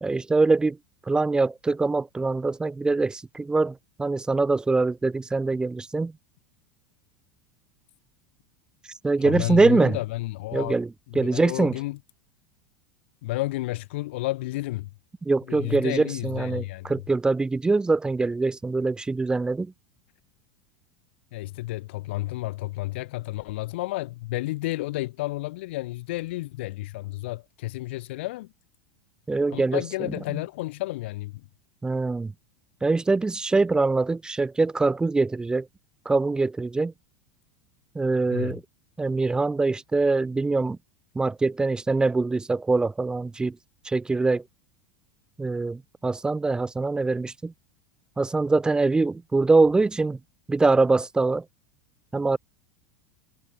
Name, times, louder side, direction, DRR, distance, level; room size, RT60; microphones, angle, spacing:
voice 1, 0.0-0.8 1.1-6.1 9.0-10.0 10.5-10.9 11.1-11.8 15.2-19.7 29.3-29.8 30.3-30.4 31.8-32.3 32.8-35.7 36.1-36.9 37.9-38.6 39.0-40.8 41.1-43.6 43.8-44.4 45.4-47.5 48.2-50.2 50.5-51.4 52.1-52.4, right 3 dB, 10° right, 0.7 m, -23 dB
voice 2, 9.2-10.8 11.1-12.0 13.2-14.9 15.5-16.9 21.3-28.5 29.5-31.4 38.3-38.6, left 18 dB, 65° left, 0.6 m, -31 dB
hypercardioid pair, 90°, 7 cm